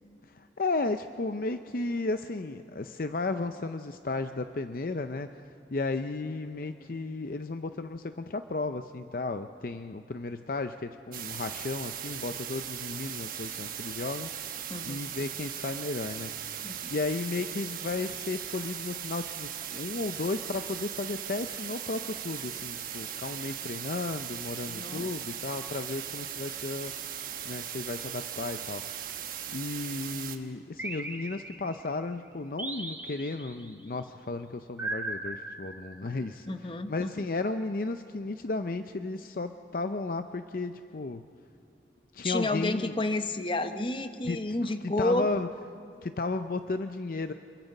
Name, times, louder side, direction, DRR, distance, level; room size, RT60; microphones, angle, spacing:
voice 1, 0.3-5.4 5.7-14.3 14.8-16.6 16.9-26.9 27.4-28.8 29.5-41.2 42.1-42.9 44.2-45.5 46.0-47.3, left 3 dB, 50° left, 9 dB, 0.5 m, -34 dB
sound 1, 11.1-30.4, right 9 dB, 50° right, 1.2 m, -38 dB
voice 2, 16.6-16.9 24.7-25.1 36.5-37.1 42.2-45.3, left 2 dB, 30° left, 8 dB, 1.0 m, -30 dB
sound 2, 30.8-31.9 32.6-33.7 34.8-36.3, right 2 dB, 10° right, 1.5 m, -38 dB
28.0 x 22.5 x 5.4 m, 2.6 s
head